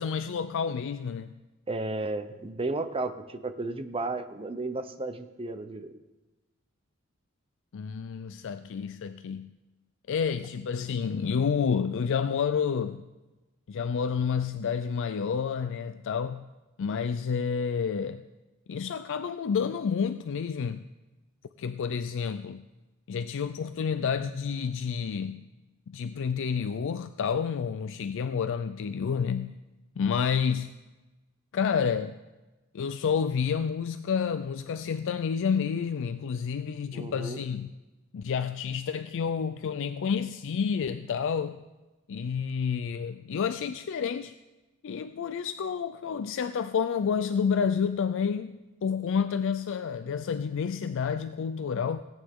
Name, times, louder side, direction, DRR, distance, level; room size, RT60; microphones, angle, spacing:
voice 1, 0.0-1.4 7.7-9.6 10.1-13.1 13.7-16.5 16.8-18.2 18.7-20.9 21.6-22.6 23.1-25.5 25.9-29.6 30.0-30.8 31.5-32.2 32.7-37.7 38.1-41.6 42.1-44.3 44.8-52.0, left 6 dB, 65° left, 0.4 m, -29 dB
voice 2, 1.7-6.0 36.9-37.4, right 2 dB, 25° right, 0.7 m, -33 dB
17.5 x 8.9 x 3.7 m
head